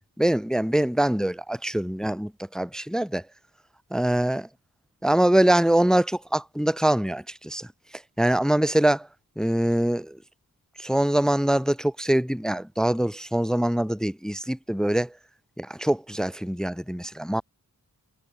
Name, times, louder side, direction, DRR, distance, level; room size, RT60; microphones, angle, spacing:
voice 1, 0.2-3.2 3.9-4.5 5.0-7.7 8.2-9.1 9.4-10.2 10.8-15.1 15.6-17.4, right 1 dB, ahead, 0.6 m, -23 dB
cardioid pair, 45°, 37 cm